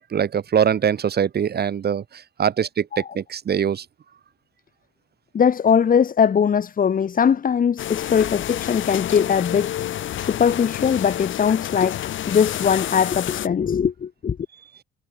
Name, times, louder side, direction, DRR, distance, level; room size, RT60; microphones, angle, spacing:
voice 1, 0.0-2.0 2.4-2.8 3.1-3.8, right 8 dB, 55° right, 3.4 m, -22 dB
voice 2, 5.3-9.7 10.2-12.0 12.3-14.4, left 7 dB, 45° left, 1.5 m, -20 dB
sound 1, 7.8-13.5, left 12 dB, 75° left, 7.8 m, -29 dB
cardioid pair, 90°, 20 cm